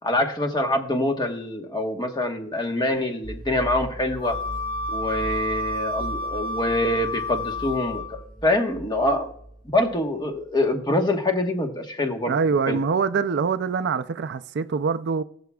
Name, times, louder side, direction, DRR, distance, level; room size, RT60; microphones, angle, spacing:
voice 1, 0.0-4.4 4.9-9.3 9.7-12.3 12.7-12.8, left 1 dB, 20° left, 1.3 m, -25 dB
sound 1, 3.2-10.6, right 1 dB, 5° left, 1.7 m, -39 dB
Wind instrument woodwind instrument, 4.2-8.2, left 1 dB, 85° left, 2.3 m, -30 dB
voice 2, 12.3-15.2, right 5 dB, 55° right, 0.4 m, -24 dB
19.5 x 7.1 x 2.3 m
head